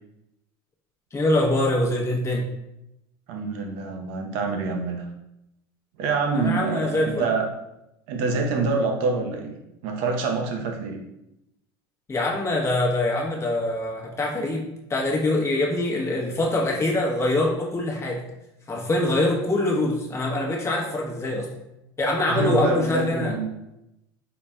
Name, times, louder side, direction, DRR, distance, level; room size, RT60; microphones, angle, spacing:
voice 1, 1.1-2.5 6.3-7.3 12.1-14.6 14.9-18.2 18.7-21.5 22.0-23.3, left 1 dB, 20° left, -1 dB, 1.1 m, -24 dB
voice 2, 3.3-5.1 6.0-7.4 8.1-9.6 9.8-11.0 22.3-23.5, right 4 dB, 65° right, 2 dB, 0.8 m, -26 dB
4.0 x 3.9 x 2.3 m, 0.86 s
hypercardioid pair, 95°, 12 cm